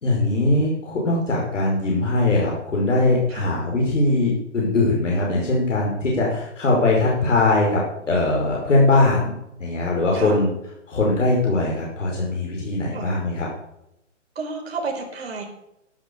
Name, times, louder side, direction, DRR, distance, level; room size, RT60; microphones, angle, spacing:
voice 1, 0.0-7.8 8.1-9.3 9.6-10.5 10.9-13.5, left 2 dB, 75° left, -2 dB, 5.4 m, -21 dB
voice 2, 10.1-10.4 12.9-13.1 14.3-15.4, right 4 dB, 55° right, 1 dB, 4.9 m, -31 dB
12.5 x 12.0 x 7.1 m, 0.84 s
hypercardioid pair, 170°, 37 cm